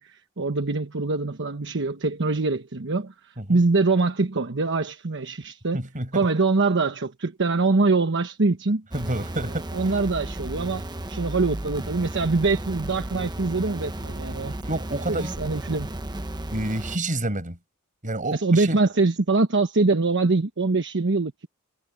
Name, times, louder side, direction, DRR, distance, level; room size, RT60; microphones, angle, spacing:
voice 1, 0.0-3.1 3.5-5.8 6.1-8.8 9.7-10.8 11.1-14.5 15.1-15.9 18.3-21.5, right 3 dB, 55° right, 1.1 m, -23 dB
voice 2, 5.7-6.2 8.9-9.7 14.6-15.3 16.5-17.6 18.0-18.8, right 1 dB, 35° right, 6.7 m, -29 dB
sound 1, 8.9-17.0, right 1 dB, 20° right, 1.0 m, -34 dB
head